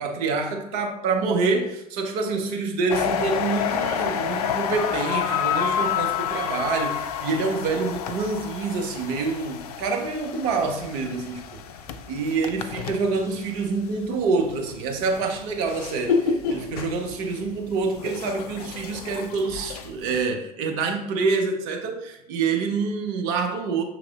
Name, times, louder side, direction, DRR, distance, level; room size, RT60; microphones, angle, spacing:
voice 1, 0.0-11.6 12.1-23.8, right 4 dB, 50° right, 0.8 m, -26 dB
sound 1, 2.9-13.9 14.4-20.2, left 7 dB, 65° left, 0.4 m, -29 dB
5.9 x 3.4 x 2.4 m
figure-of-eight pair, 70°, 21 cm